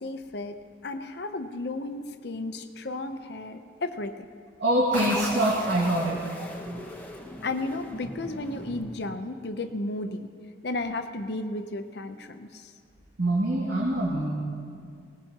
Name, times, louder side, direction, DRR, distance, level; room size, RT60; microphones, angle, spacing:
voice 1, 0.0-4.2 7.4-10.3 10.6-12.7, left 2 dB, 55° left, 7 dB, 0.7 m, -33 dB
voice 2, 4.6-6.2 13.2-14.3, right 1 dB, 75° right, -5 dB, 2.1 m, -24 dB
sound 1, 4.9-9.5, equal, 10° left, 1.0 m, -37 dB
20.0 x 19.0 x 2.9 m, 2.2 s
head